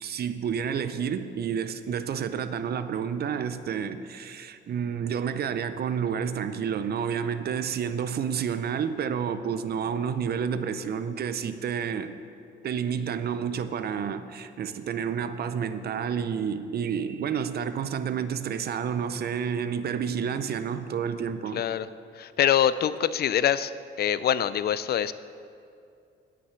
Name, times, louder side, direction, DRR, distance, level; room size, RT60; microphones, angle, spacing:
voice 1, 0.0-12.1 12.6-21.6, right 7 dB, 55° right, 0.6 m, -30 dB
voice 2, 21.5-21.9 22.1-23.7 24.0-25.1, left 10 dB, 55° left, 0.4 m, -24 dB
9.7 x 5.9 x 7.6 m
cardioid pair, 90°, 20 cm